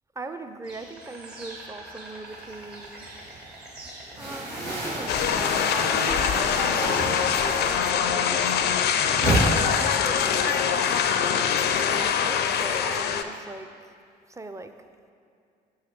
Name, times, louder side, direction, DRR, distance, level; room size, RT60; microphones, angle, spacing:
voice 1, 0.2-3.1 4.2-11.0 11.9-13.7 14.3-14.7, right 3 dB, 15° right, 7 dB, 0.5 m, -40 dB
Insect, 0.6-11.8, right 2 dB, 50° right, 1.5 m, -45 dB
sound 1, 2.4-3.4 3.7-8.1 8.4-9.4, right 1 dB, 80° right, 1.6 m, -30 dB
sound 2, 5.1-13.2, left 8 dB, 50° left, 0.4 m, -24 dB
6.0 x 4.8 x 4.6 m, 2.3 s
hypercardioid pair, 45°, 21 cm